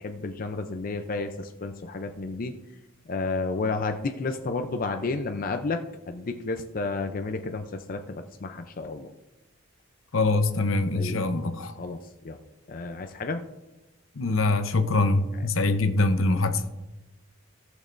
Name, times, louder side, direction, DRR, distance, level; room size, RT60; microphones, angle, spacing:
voice 1, 0.0-2.5 3.1-9.1 10.9-11.2 11.8-12.4 12.7-13.4, left 3 dB, 45° left, 6 dB, 0.5 m, -31 dB
voice 2, 10.1-11.7 14.2-16.6, left 2 dB, 75° left, 8 dB, 0.8 m, -24 dB
17.0 x 6.4 x 2.6 m, 0.98 s
head